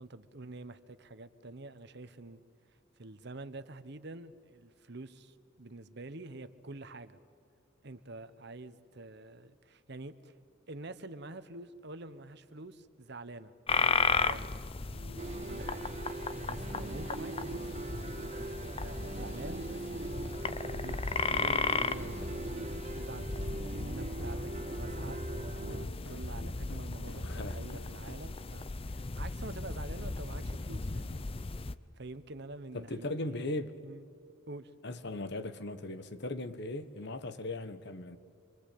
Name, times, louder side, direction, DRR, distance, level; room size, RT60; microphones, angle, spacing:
voice 1, 0.0-2.4 3.0-7.2 7.8-10.3 10.7-13.5 13.8-14.5 14.9-15.8 16.4-17.7 18.2-31.2 32.0-33.6 33.8-34.1 34.5-34.7, right 2 dB, 55° right, 1.1 m, -47 dB
sound 1, 13.7-31.8, left 4 dB, 25° left, 0.6 m, -35 dB
sound 2, 15.2-25.9, right 3 dB, 35° right, 0.6 m, -41 dB
sound 3, 24.2-28.4, equal, 85° left, 2.6 m, -46 dB
voice 2, 27.2-27.6 32.7-33.7 34.8-38.2, left 2 dB, 55° left, 1.3 m, -38 dB
26.0 x 24.5 x 8.6 m
head